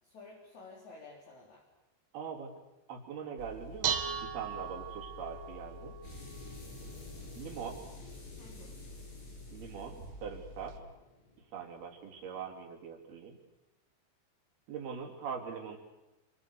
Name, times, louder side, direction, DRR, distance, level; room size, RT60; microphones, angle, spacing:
voice 1, 0.0-1.6 8.4-8.8, left 3 dB, 40° left, -1 dB, 4.8 m, -52 dB
voice 2, 2.1-2.5 2.9-5.9 7.4-7.8 9.5-10.8 11.5-13.4 14.7-15.8, right 6 dB, 55° right, 3 dB, 5.0 m, -42 dB
Dishes pots and pans, 3.4-10.8, right 6 dB, 70° right, 4.2 m, -41 dB
sound 1, 6.0-12.5, left 3 dB, 60° left, 8.8 m, -52 dB
29.5 x 25.5 x 7.1 m, 1.0 s
omnidirectional pair, 5.9 m